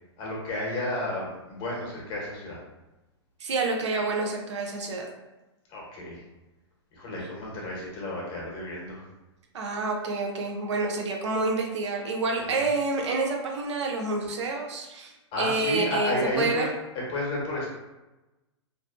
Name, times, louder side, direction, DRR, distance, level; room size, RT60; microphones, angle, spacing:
voice 1, 0.2-2.6 5.7-6.2 6.9-9.0 12.4-12.7 15.3-17.7, left 1 dB, 35° left, -4 dB, 1.0 m, -32 dB
voice 2, 3.4-5.1 9.5-16.7, right 3 dB, 85° right, 1 dB, 0.6 m, -28 dB
2.6 x 2.2 x 2.4 m, 1.0 s
hypercardioid pair, 135°, 15 cm